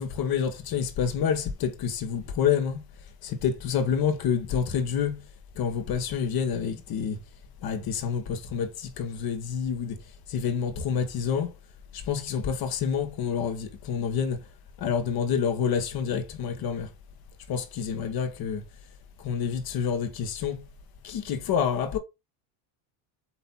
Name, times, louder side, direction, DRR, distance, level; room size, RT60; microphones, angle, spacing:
voice 1, 0.0-2.8 3.2-5.2 5.6-7.2 7.6-8.7 9.0-10.0 10.3-11.5 12.1-14.4 14.8-16.9 17.5-18.6 19.2-20.6 21.0-22.0, left 7 dB, 45° left, 1.6 m, -28 dB
8.5 x 3.3 x 4.2 m
cardioid pair, 135°, 48 cm